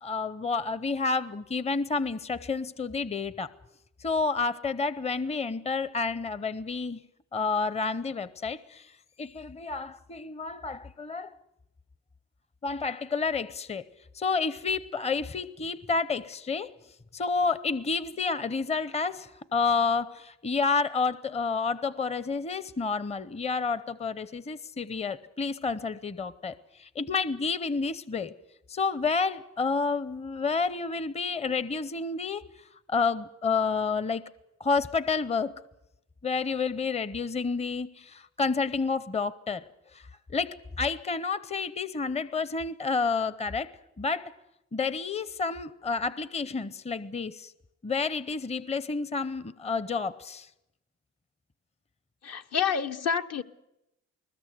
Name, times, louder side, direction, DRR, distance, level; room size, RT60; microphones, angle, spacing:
voice 1, 0.0-3.5 4.0-7.0 7.3-8.9 9.2-11.3 12.6-13.8 14.1-16.7 17.1-28.3 28.7-32.4 32.9-34.3 34.6-35.5 36.2-39.6 39.9-43.7 44.0-44.3 44.7-47.5 47.8-50.5, left 4 dB, 20° left, 0.7 m, -30 dB
voice 2, 52.2-53.4, left 7 dB, 55° left, 1.0 m, -28 dB
20.5 x 20.5 x 7.9 m
cardioid pair, 90°, 30 cm